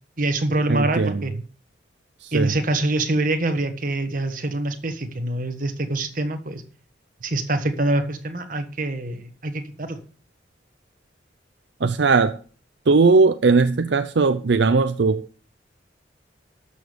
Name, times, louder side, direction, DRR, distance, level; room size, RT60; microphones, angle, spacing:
voice 1, 0.2-1.3 2.3-6.6 7.2-10.0, right 2 dB, 45° right, 1.4 m, -25 dB
voice 2, 0.7-1.2 2.2-2.5 11.8-12.4 12.9-15.4, right 4 dB, 70° right, 0.5 m, -18 dB
12.5 x 7.1 x 5.2 m
head